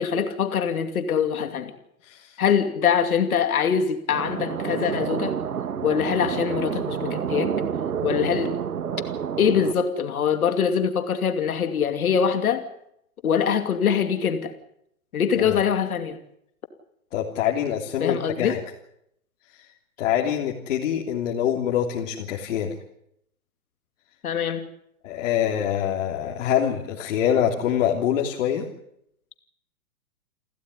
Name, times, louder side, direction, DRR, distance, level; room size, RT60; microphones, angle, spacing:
voice 1, 0.0-1.7 2.4-5.4 5.8-7.5 8.0-8.6 9.4-12.6 13.2-14.5 15.1-16.2 18.0-18.5 24.2-24.7, left 7 dB, 80° left, 7 dB, 2.7 m, -23 dB
voice 2, 2.0-2.4 15.4-15.6 17.1-18.6 19.5-19.7 20.0-22.7 25.0-28.7, left 9 dB, 60° left, -1 dB, 3.3 m, -25 dB
sound 1, 4.1-9.7, right 8 dB, 90° right, 1.8 m, -29 dB
29.5 x 13.0 x 9.9 m, 0.76 s
hypercardioid pair, 140°, 43 cm